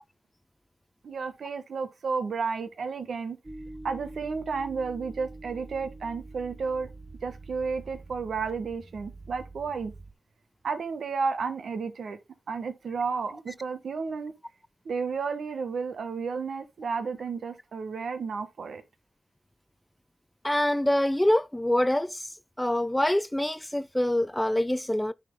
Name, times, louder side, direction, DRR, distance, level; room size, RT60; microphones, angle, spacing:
voice 1, 1.0-3.4 3.8-6.9 7.2-9.9 10.6-12.2 12.5-14.3 14.8-18.8, right 5 dB, 85° right, 1.3 m, -32 dB
sound 1, 3.4-10.1, right 2 dB, 25° right, 1.1 m, -45 dB
voice 2, 20.4-22.3 22.6-25.1, left 1 dB, 10° left, 0.4 m, -25 dB
9.9 x 4.3 x 3.6 m
cardioid pair, 70°, 0 cm